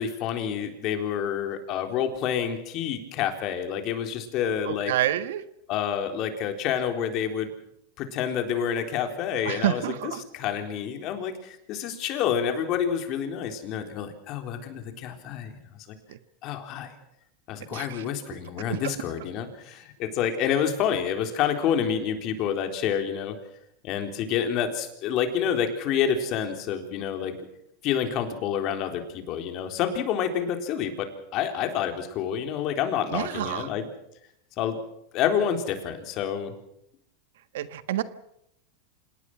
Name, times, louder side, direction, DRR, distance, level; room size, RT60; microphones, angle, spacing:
voice 1, 0.0-4.9 5.7-7.5 8.0-15.5 16.4-16.9 17.5-23.4 23.8-27.4 27.8-33.9 34.6-34.8 35.1-36.5, left 8 dB, 45° left, 6 dB, 3.8 m, -28 dB
voice 2, 4.7-5.4 9.5-10.2 16.1-16.2 17.7-17.8 18.8-18.9 33.1-33.7 37.5-38.0, right 12 dB, 80° right, 13 dB, 1.4 m, -28 dB
27.0 x 19.0 x 6.1 m, 0.77 s
supercardioid pair, 140°, 0 cm